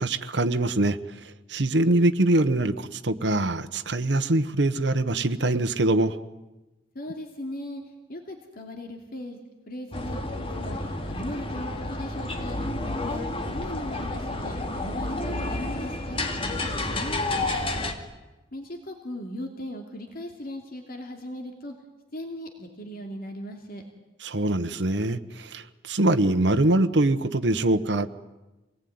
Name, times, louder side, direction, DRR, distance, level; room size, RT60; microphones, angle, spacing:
voice 1, 0.0-6.2 17.4-17.8 24.2-28.2, right 2 dB, 70° right, 8 dB, 1.1 m, -24 dB
voice 2, 6.9-9.4 9.7-10.2 10.5-12.6 13.0-17.2 18.5-21.7 22.1-23.8, left 1 dB, 55° left, 3 dB, 2.7 m, -38 dB
sound 1, 9.9-17.9, left 2 dB, 30° left, 2.4 m, -30 dB
26.5 x 19.5 x 9.5 m, 1.1 s
head